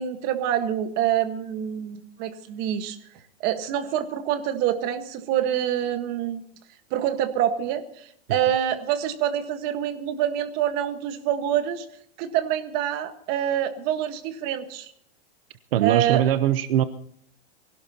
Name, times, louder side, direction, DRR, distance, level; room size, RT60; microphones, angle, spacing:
voice 1, 0.0-3.0 3.4-6.4 6.9-11.8 12.2-14.9 15.8-16.2, right 10 dB, 30° right, 8 dB, 1.5 m, -26 dB
voice 2, 15.7-16.8, right 11 dB, 65° right, 12 dB, 0.9 m, -21 dB
24.0 x 17.5 x 2.9 m, 0.66 s
supercardioid pair, 170°, 30 cm